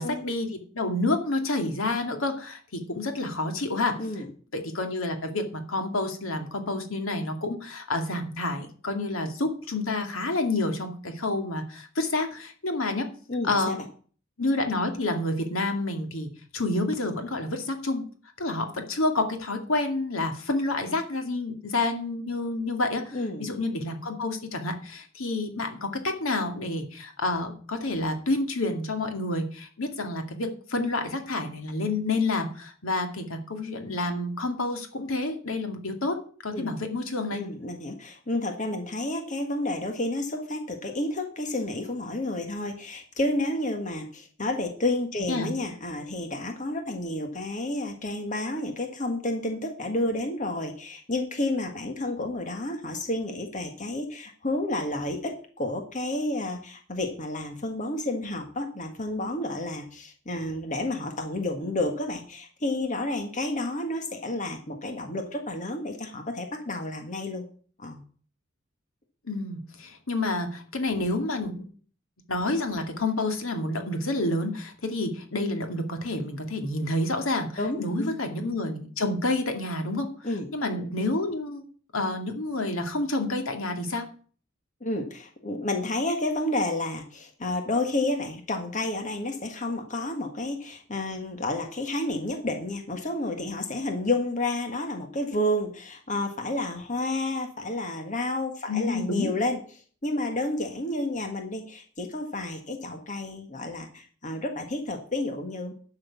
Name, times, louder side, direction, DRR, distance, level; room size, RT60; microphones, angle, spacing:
voice 1, 0.0-4.0 4.5-13.1 13.4-13.8 14.4-18.0 18.4-36.2 36.4-37.4 45.3-45.5 69.3-71.7 72.3-80.1 80.5-81.6 81.9-84.1 98.7-99.3, left 2 dB, 90° left, 5 dB, 2.3 m, -29 dB
voice 2, 13.3-13.8 23.1-23.5 36.5-36.7 37.3-67.5 67.8-68.0 77.6-78.1 80.2-80.5 84.8-99.6 100.0-105.7, left 2 dB, 40° left, 5 dB, 1.7 m, -30 dB
11.5 x 6.5 x 7.1 m, 0.43 s
head